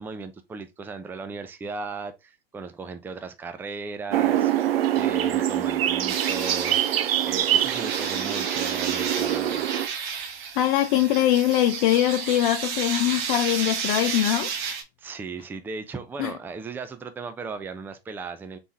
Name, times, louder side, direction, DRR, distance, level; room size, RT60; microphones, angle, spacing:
voice 1, 0.0-9.7 15.0-18.6, right 4 dB, 5° right, 0.4 m, -36 dB
sound 1, 4.1-9.9, right 11 dB, 70° right, 0.6 m, -24 dB
sound 2, 6.1-14.8, right 6 dB, 55° right, 1.4 m, -32 dB
voice 2, 10.6-14.7 16.2-16.3, left 12 dB, 50° left, 0.6 m, -22 dB
4.3 x 3.5 x 2.9 m
hypercardioid pair, 110°, 30 cm